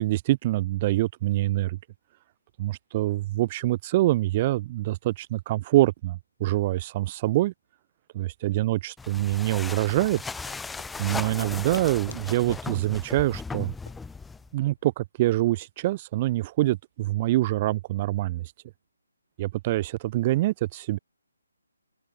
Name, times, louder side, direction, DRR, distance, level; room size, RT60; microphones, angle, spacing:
voice 1, 0.0-1.8 2.6-7.5 8.2-10.2 11.0-13.7 14.5-18.5 19.4-21.0, right 16 dB, 30° right, 0.6 m, -25 dB
sound 1, 9.0-14.5, left 4 dB, 5° left, 1.0 m, -37 dB
sound 2, 10.1-14.9, left 5 dB, 60° left, 1.4 m, -48 dB
open air
figure-of-eight pair, 150°, 0 cm